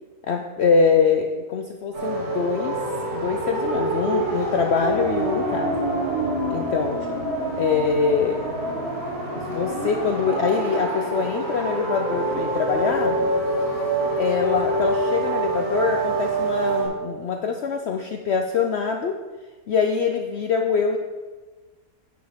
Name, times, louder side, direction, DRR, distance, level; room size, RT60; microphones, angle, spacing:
voice 1, 0.2-2.8 3.1-5.9 6.5-7.0 7.6-8.5 9.3-13.2 14.2-19.2 19.7-21.0, left 5 dB, 60° left, 4 dB, 0.7 m, -24 dB
sound 1, 1.9-16.9, right 2 dB, 60° right, 2.4 m, -26 dB
9.3 x 5.2 x 5.8 m, 1.3 s
omnidirectional pair, 1.6 m